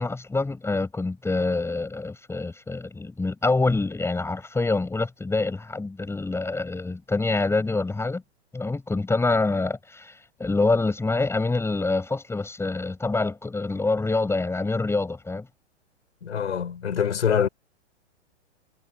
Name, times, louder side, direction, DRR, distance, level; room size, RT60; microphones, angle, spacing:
voice 1, 0.0-8.2 8.5-15.5, left 3 dB, 5° left, 7.7 m, -26 dB
voice 2, 16.2-17.5, left 8 dB, 75° left, 6.0 m, -24 dB
hypercardioid pair, 115°, 36 cm